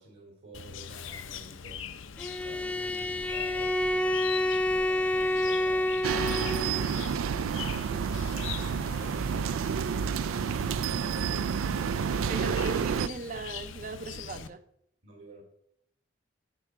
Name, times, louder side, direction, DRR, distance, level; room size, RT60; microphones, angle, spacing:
voice 1, 0.0-1.8 2.4-10.5 10.9-12.7 15.0-15.4, equal, 60° right, 2.3 m, -50 dB
Chirp tweet, 0.5-14.5, left 7 dB, 70° left, 0.6 m, -42 dB
Bowed string instrument, 2.2-6.9, left 1 dB, 5° left, 0.4 m, -28 dB
sound 1, 6.0-13.1, right 6 dB, 85° right, 0.4 m, -29 dB
voice 2, 12.3-14.6, right 3 dB, 40° right, 0.6 m, -38 dB
13.5 x 5.0 x 4.6 m
head